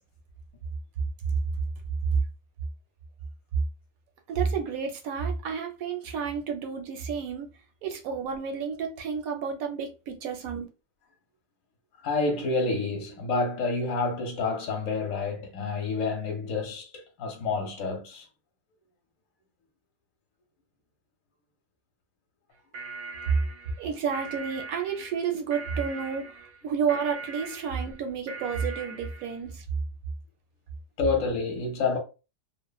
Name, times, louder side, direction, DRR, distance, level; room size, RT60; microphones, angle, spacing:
voice 1, 4.3-7.5 7.8-10.7 23.8-26.4 26.6-29.6, right 6 dB, 70° right, 0.9 m, -31 dB
voice 2, 12.0-18.3 31.0-32.0, left 3 dB, 65° left, 0.9 m, -28 dB
sound 1, 22.5-29.5, right 4 dB, 90° right, 1.3 m, -41 dB
3.0 x 2.0 x 2.2 m
omnidirectional pair, 1.7 m